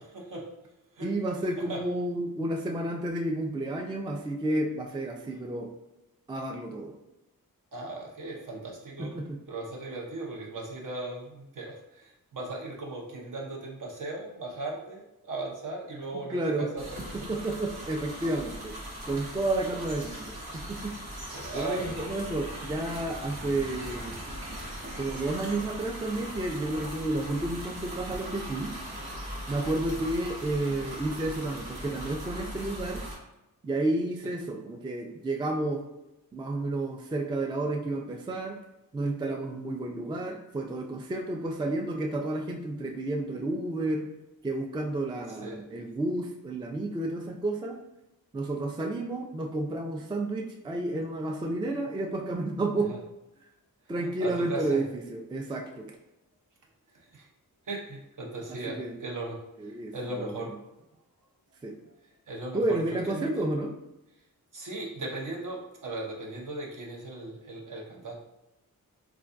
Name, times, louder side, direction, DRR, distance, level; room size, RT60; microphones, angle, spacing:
voice 1, 0.1-0.5 1.0-1.1 1.6-1.8 7.7-9.1 9.5-17.3 21.3-22.0 29.9-30.0 34.2-34.3 45.3-45.6 52.9-53.0 54.0-54.8 56.9-57.3 57.7-60.5 61.8-61.9 62.3-62.8 63.1-63.5 64.5-68.1, right 2 dB, 55° right, -1 dB, 0.8 m, -38 dB
voice 2, 1.0-5.7 6.3-7.0 9.0-9.4 16.3-16.7 17.1-18.8 19.1-20.9 21.5-24.2 25.0-28.7 29.5-33.0 33.6-35.8 36.3-38.6 38.9-44.1 44.4-47.8 48.3-52.9 53.9-55.9 58.7-58.9 59.6-59.9 60.3-60.4 61.6-61.8 62.5-63.7, right 2 dB, 15° right, 2 dB, 0.3 m, -31 dB
sound 1, 16.8-33.1, equal, 80° right, 1.0 m, -39 dB
3.3 x 2.3 x 2.5 m, 0.89 s
cardioid pair, 60°, 37 cm